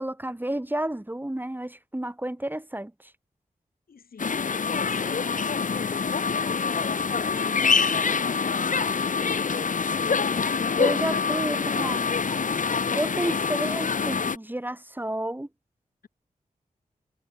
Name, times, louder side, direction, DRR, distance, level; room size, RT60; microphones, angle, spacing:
voice 1, 0.0-3.1 10.8-12.1 12.9-15.5, right 1 dB, 15° right, 2.1 m, -31 dB
voice 2, 3.9-7.7 8.1-11.9, left 6 dB, 80° left, 4.7 m, -42 dB
sound 1, 4.2-14.4, left 5 dB, 60° left, 1.1 m, -25 dB
cardioid pair, 45°, 15 cm